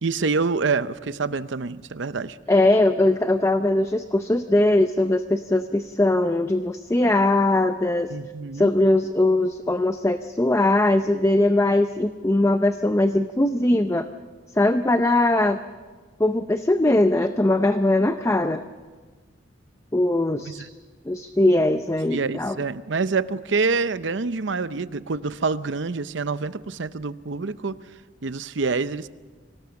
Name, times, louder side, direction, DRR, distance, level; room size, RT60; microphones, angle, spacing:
voice 1, 0.0-2.4 8.1-8.7 20.5-20.7 22.1-27.8 28.2-29.1, right 4 dB, 70° right, 14 dB, 0.7 m, -26 dB
voice 2, 2.5-8.1 8.5-14.0 14.6-15.6 16.2-18.6 19.9-20.7 21.1-22.6, left 1 dB, 15° left, 9 dB, 0.6 m, -20 dB
25.0 x 18.0 x 7.0 m, 1.4 s
head